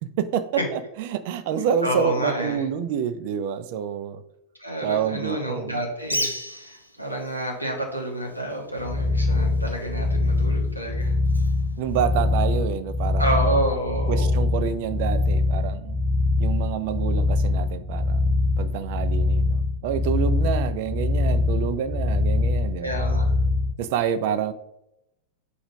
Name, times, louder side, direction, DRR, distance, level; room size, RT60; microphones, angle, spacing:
voice 1, 0.0-4.2 4.8-5.8 11.8-13.3 14.1-16.0 16.4-23.0 23.8-24.5, right 8 dB, 50° right, 11 dB, 0.5 m, -28 dB
voice 2, 1.8-2.6 4.6-6.3 6.5-11.1 13.2-14.3 22.8-23.3, right 1 dB, 90° right, 0 dB, 1.6 m, -28 dB
Bird, 6.0-12.6, equal, 90° left, 0.6 m, -37 dB
sound 1, 8.8-23.7, left 2 dB, ahead, 0.9 m, -23 dB
5.0 x 4.9 x 5.2 m, 0.84 s
figure-of-eight pair, 90°, 0 cm